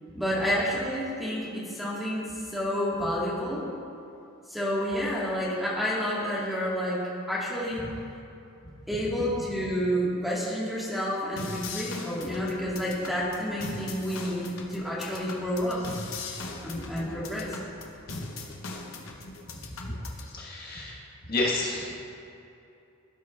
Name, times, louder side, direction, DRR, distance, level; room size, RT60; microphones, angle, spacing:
voice 1, 0.1-3.7 4.5-7.8 8.9-15.8 16.6-17.6, equal, ahead, -7 dB, 1.7 m, -29 dB
sound 1, 11.4-20.3, left 3 dB, 70° left, 0.9 m, -40 dB
voice 2, 20.3-21.0 21.3-21.9, left 2 dB, 45° left, -4 dB, 1.5 m, -30 dB
16.0 x 6.1 x 2.4 m, 2.7 s
head